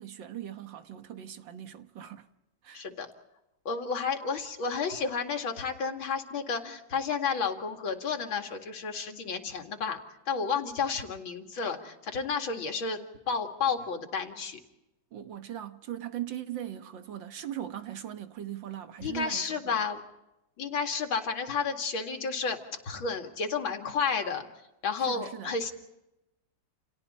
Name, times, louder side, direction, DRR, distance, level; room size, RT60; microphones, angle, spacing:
voice 1, 0.0-2.3 2.6-2.9 15.1-19.8 25.0-25.5, right 11 dB, 70° right, 1.9 m, -40 dB
voice 2, 2.7-3.1 3.7-10.0 10.3-14.6 19.0-20.0 20.6-22.6 22.8-24.5 24.8-25.7, left 5 dB, 85° left, 2.9 m, -31 dB
30.0 x 29.0 x 4.3 m
omnidirectional pair, 2.1 m